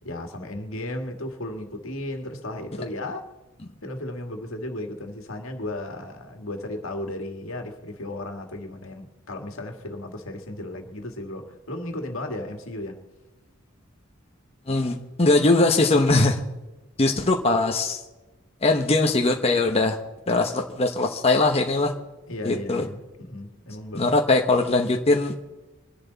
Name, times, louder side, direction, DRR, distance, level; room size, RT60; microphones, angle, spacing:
voice 1, 0.0-3.2 3.8-13.0 22.3-24.0, left 1 dB, 75° left, 2.0 m, -35 dB
voice 2, 14.7-16.4 17.0-18.0 18.6-20.0 20.3-21.9 22.4-22.8 23.9-25.3, left 2 dB, 30° left, 1.0 m, -21 dB
26.0 x 11.0 x 4.1 m
head